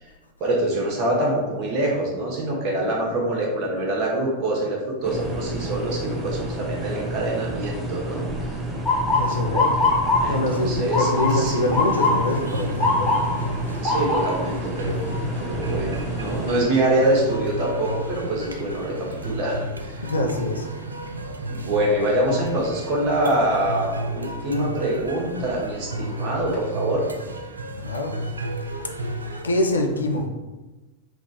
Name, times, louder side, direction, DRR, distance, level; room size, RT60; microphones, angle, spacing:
voice 1, 0.4-8.5 10.2-11.7 13.8-15.1 15.4-18.9 19.2-20.0 21.5-27.0, right 1 dB, 40° right, -2 dB, 1.2 m, -25 dB
sound 1, 5.0-16.6, right 1 dB, 15° right, 0.7 m, -31 dB
Motor vehicle (road) / Siren, 8.9-20.8 21.2-21.6 22.4-22.7 24.6-24.8 25.4-25.5 25.9-26.6, left 2 dB, 30° left, 1.0 m, -26 dB
voice 2, 9.1-9.8 10.3-13.2 20.0-20.7 27.8-28.1 29.4-30.3, left 1 dB, 75° left, 3 dB, 0.5 m, -24 dB
sound 2, 11.2-29.4, right 1 dB, 75° right, 0.3 m, -33 dB
3.7 x 2.3 x 4.0 m, 1.2 s
figure-of-eight pair, 90°, 0 cm